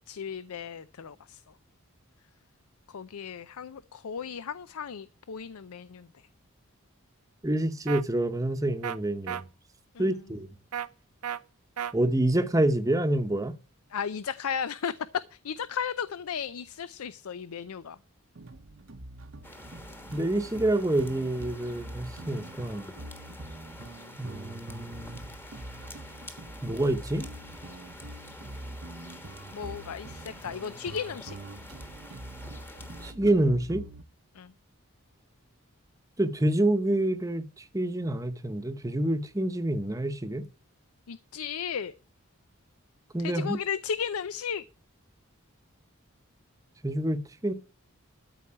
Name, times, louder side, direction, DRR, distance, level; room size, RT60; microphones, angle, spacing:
voice 1, 0.0-1.4 2.9-6.1 9.9-10.2 13.9-14.9 15.3-18.0 29.5-31.4 34.3-34.5 41.1-41.9 43.2-44.6, left 7 dB, 80° left, 0.5 m, -35 dB
voice 2, 7.4-9.4 10.0-10.5 11.9-13.5 20.1-22.9 24.2-25.2 26.6-27.3 33.0-33.8 36.2-40.5 43.1-43.6 46.8-47.5, right 1 dB, 15° right, 0.9 m, -27 dB
sound 1, 7.9-8.0 8.8-9.0 9.3-9.4 10.7-10.9 11.2-11.4 11.8-11.9, right 9 dB, 90° right, 0.6 m, -32 dB
sound 2, 18.4-34.0, right 1 dB, 60° right, 0.9 m, -44 dB
sound 3, 19.4-33.1, left 1 dB, 10° left, 1.2 m, -48 dB
13.0 x 4.6 x 8.7 m
head